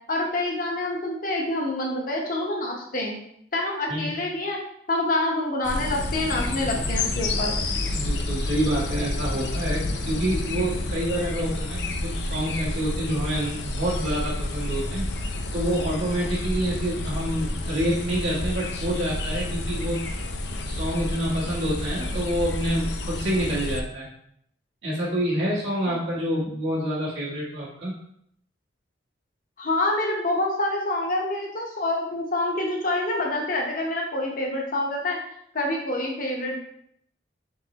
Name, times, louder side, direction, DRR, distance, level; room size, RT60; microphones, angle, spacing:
voice 1, 0.1-3.2 3.5-4.6 4.9-7.6 29.6-35.2 35.5-36.6, left 1 dB, 45° left, -1 dB, 0.9 m, -27 dB
sound 1, 5.6-23.8, left 2 dB, 60° left, 0.5 m, -30 dB
sound 2, 5.7-11.0, left 1 dB, 80° left, 1.5 m, -33 dB
voice 2, 7.9-15.1 15.5-20.2 20.6-24.1 24.8-28.0, right 1 dB, 75° right, -6 dB, 1.3 m, -27 dB
4.0 x 3.8 x 2.9 m, 0.69 s
head